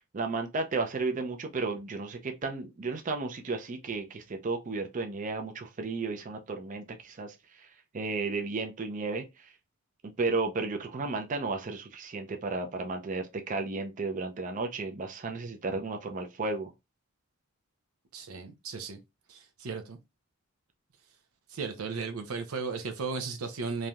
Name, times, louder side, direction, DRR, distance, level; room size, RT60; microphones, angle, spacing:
voice 1, 0.0-7.7 7.9-9.5 10.2-16.7, right 3 dB, 40° right, 0.5 m, -33 dB
voice 2, 18.1-19.0 19.3-20.0 21.5-23.9, right 4 dB, 90° right, 0.6 m, -35 dB
3.1 x 2.7 x 2.2 m
head